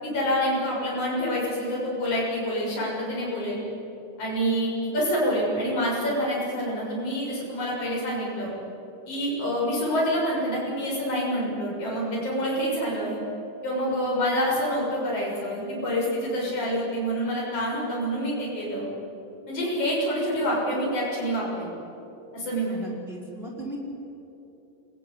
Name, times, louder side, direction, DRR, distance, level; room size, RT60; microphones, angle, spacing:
voice 1, 0.0-3.6 4.2-8.5 9.1-13.2 13.6-18.9 19.5-21.7 22.3-22.9, equal, 45° left, -5 dB, 7.8 m, -27 dB
voice 2, 22.8-23.8, right 1 dB, 15° right, -2 dB, 5.2 m, -38 dB
27.0 x 19.5 x 9.8 m, 2.9 s
omnidirectional pair, 3.8 m